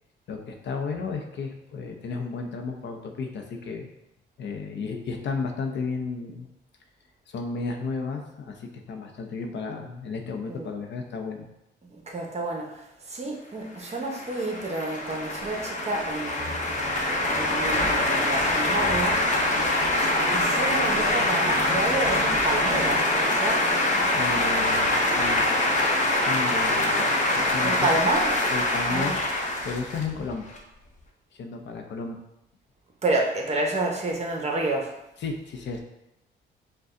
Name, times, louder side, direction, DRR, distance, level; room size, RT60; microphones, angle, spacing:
voice 1, 0.3-3.9 4.4-6.5 7.3-11.5 24.1-25.5 26.1-27.9 28.5-29.2 29.6-30.5 31.3-32.2 35.2-35.8, left 4 dB, 65° left, 3 dB, 0.7 m, -33 dB
voice 2, 11.8-17.0 17.3-19.5 20.3-23.7 27.6-28.4 28.9-29.2 33.0-34.9, right 2 dB, 35° right, 1 dB, 0.9 m, -29 dB
sound 1, 13.9-30.6, left 1 dB, 40° left, 0.9 m, -24 dB
sound 2, 14.8-23.0, left 2 dB, 5° right, 1.6 m, -44 dB
5.1 x 2.3 x 3.7 m, 0.87 s
cardioid pair, 90°, 20 cm